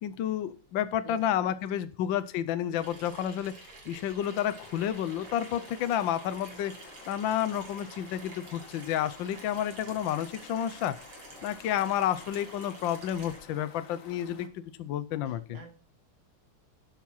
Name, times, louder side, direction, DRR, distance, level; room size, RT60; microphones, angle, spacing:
voice 1, 0.0-6.7 7.1-11.0 11.4-15.4, left 10 dB, 70° left, 12 dB, 1.3 m, -30 dB
voice 2, 1.0-1.9 11.8-11.9 15.2-15.7, right 3 dB, 55° right, 4 dB, 3.0 m, -51 dB
Water tap faucet / Sink (filling or washing), 2.8-13.4, right 3 dB, 85° right, 3.4 m, -50 dB
sound 1, 4.2-14.5, left 5 dB, 45° left, 1.5 m, -52 dB
11.5 x 7.5 x 5.6 m, 0.37 s
omnidirectional pair, 2.4 m